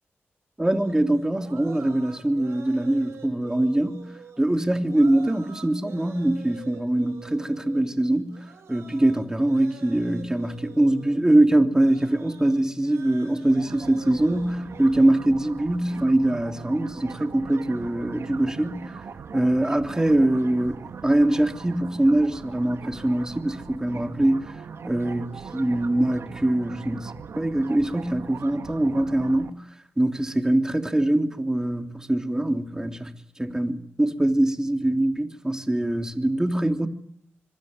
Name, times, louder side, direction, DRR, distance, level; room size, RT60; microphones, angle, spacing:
voice 1, 0.6-18.9 19.3-24.5 24.8-29.6 30.0-36.9, right 1 dB, 15° right, 3.2 m, -23 dB
sound 1, 0.6-11.2 11.6-15.1, right 6 dB, 85° right, 7.9 m, -47 dB
sound 2, 13.5-29.5, right 5 dB, 65° right, 2.5 m, -40 dB
25.0 x 23.0 x 9.9 m
cardioid pair, 70°, 5 cm